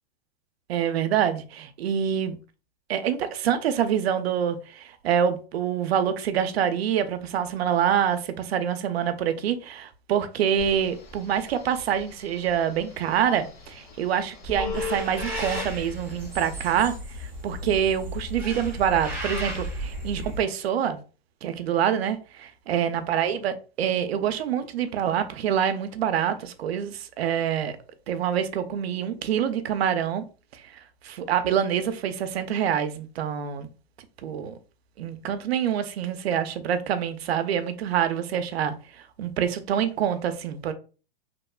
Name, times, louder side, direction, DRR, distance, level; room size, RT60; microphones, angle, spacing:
voice 1, 0.7-2.4 2.9-21.0 21.4-27.8 28.1-30.2 30.5-30.8 31.2-33.7 34.2-34.6 35.0-40.7, right 9 dB, 85° right, 0.5 m, -26 dB
Telephone, 10.6-17.0, left 3 dB, 40° left, 0.8 m, -38 dB
sound 1, 14.7-20.4, right 1 dB, 5° right, 0.4 m, -35 dB
3.0 x 2.1 x 2.2 m
hypercardioid pair, 165°, 30 cm